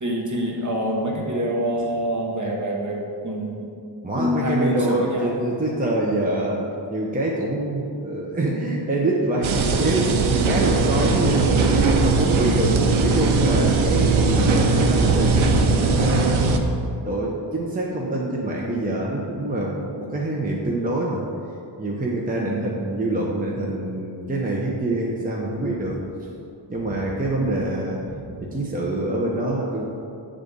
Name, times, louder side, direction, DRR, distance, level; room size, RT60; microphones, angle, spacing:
voice 1, 0.0-3.7 4.1-5.3 12.4-13.0 22.3-22.7 27.3-27.7, equal, 40° right, -1 dB, 1.1 m, -26 dB
voice 2, 4.0-6.6 6.9-15.3 15.8-16.4 17.0-21.2 21.8-26.0 26.7-29.8, right 2 dB, 20° right, -3 dB, 0.7 m, -25 dB
sound 1, 9.4-16.6, right 3 dB, 90° right, 0.7 m, -19 dB
8.1 x 3.7 x 5.2 m, 2.5 s
wide cardioid pair, 95°, 47 cm